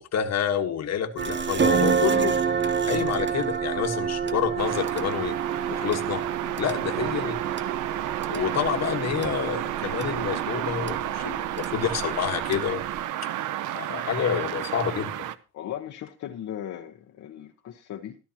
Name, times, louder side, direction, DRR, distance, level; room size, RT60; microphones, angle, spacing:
voice 1, 0.0-2.4 2.9-5.3 5.7-6.2 6.6-7.6 8.3-12.8 13.7-15.3, left 8 dB, 60° left, 1.5 m, -28 dB
sound 1, 1.2-13.0, right 6 dB, 40° right, 1.0 m, -29 dB
sound 2, 4.6-15.4, right 12 dB, 85° right, 0.8 m, -31 dB
voice 2, 15.5-18.2, left 11 dB, 75° left, 1.1 m, -38 dB
14.0 x 12.0 x 2.9 m
cardioid pair, 90°, 30 cm